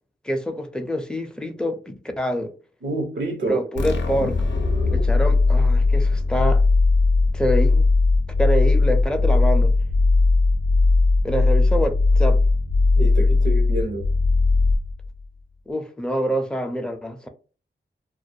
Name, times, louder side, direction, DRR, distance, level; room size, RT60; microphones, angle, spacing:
voice 1, 0.2-2.5 3.5-4.4 4.9-6.6 7.3-7.9 8.4-9.7 11.2-12.4 15.7-17.3, equal, 5° left, 0.4 m, -26 dB
voice 2, 2.8-3.6 12.9-14.0, right 2 dB, 90° right, 0.7 m, -27 dB
sound 1, 3.8-15.2, left 3 dB, 80° left, 0.5 m, -18 dB
2.3 x 2.2 x 2.6 m
wide cardioid pair, 85°, 19 cm